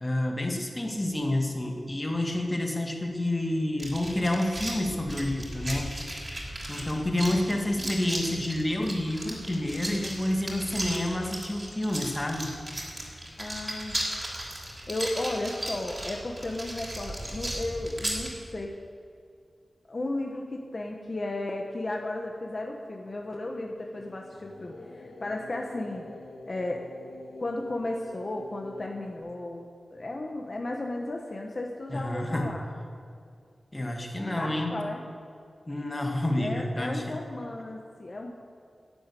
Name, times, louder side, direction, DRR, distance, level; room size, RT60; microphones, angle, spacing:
voice 1, 0.0-5.9 6.7-12.5 31.9-32.5 33.7-34.8 35.7-37.2, left 1 dB, 20° left, 2 dB, 1.9 m, -29 dB
sound 1, 3.8-18.3, right 1 dB, 25° right, 3.5 m, -36 dB
voice 2, 13.4-14.0 14.9-18.7 19.9-26.0 26.4-26.8 27.4-32.6 34.4-35.0 36.4-38.3, left 2 dB, 40° left, 1 dB, 1.2 m, -34 dB
sound 2, 23.8-29.2, left 2 dB, 90° left, 2.2 m, -47 dB
11.0 x 10.5 x 8.4 m, 2.3 s
wide cardioid pair, 95°, 0 cm